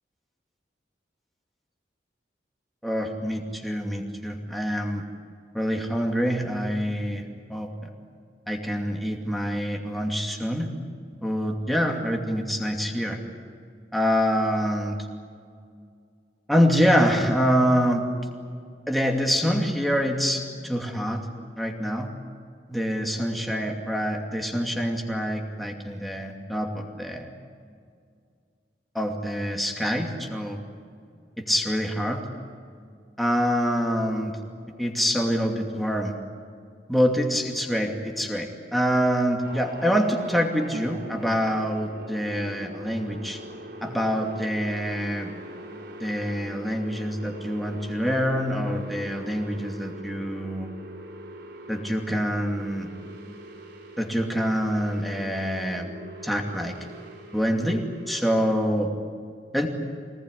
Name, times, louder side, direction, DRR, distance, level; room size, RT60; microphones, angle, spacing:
voice 1, 2.8-5.0 5.5-7.2 7.5-7.9 8.5-10.7 11.2-13.2 13.9-15.0 16.5-18.0 18.9-21.2 21.6-22.1 22.7-27.3 28.9-30.6 31.4-32.2 33.2-34.4 34.8-36.2 36.9-43.4 43.8-45.3 46.0-50.7 51.7-52.9 54.0-55.9 56.2-56.7 57.3-58.9 59.5-59.7, equal, ahead, 1 dB, 2.6 m, -25 dB
sound 1, 39.4-58.5, right 1 dB, 70° right, 3.4 m, -43 dB
25.5 x 19.5 x 9.9 m, 2.2 s
head